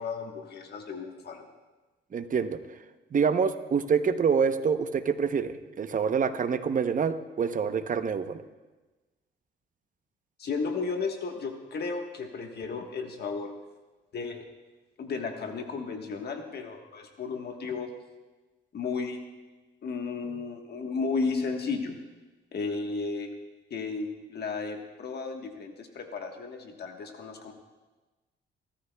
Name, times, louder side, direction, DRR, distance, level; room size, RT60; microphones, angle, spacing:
voice 1, 0.0-1.5 10.4-13.5 14.1-14.4 15.0-17.9 18.7-19.2 19.8-22.0 22.5-23.3 23.7-27.5, left 4 dB, 55° left, 3 dB, 1.3 m, -34 dB
voice 2, 2.1-2.6 3.1-8.4, right 6 dB, 40° right, 9 dB, 0.8 m, -26 dB
25.5 x 13.0 x 2.3 m, 1.2 s
cardioid pair, 90°, 20 cm